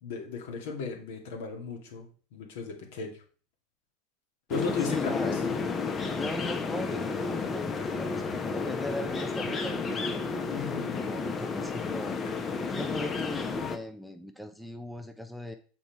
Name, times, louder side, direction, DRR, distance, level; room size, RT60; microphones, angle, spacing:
voice 1, 0.0-2.1 2.3-3.2 4.5-5.4 10.5-11.0, left 4 dB, 70° left, 1 dB, 2.0 m, -36 dB
sound 1, 4.5-13.8, left 4 dB, 30° left, 1.0 m, -31 dB
voice 2, 4.8-10.2 10.9-12.2 12.7-15.5, left 1 dB, ahead, 7 dB, 0.7 m, -39 dB
6.9 x 4.3 x 4.6 m, 0.40 s
hypercardioid pair, 85°, 0 cm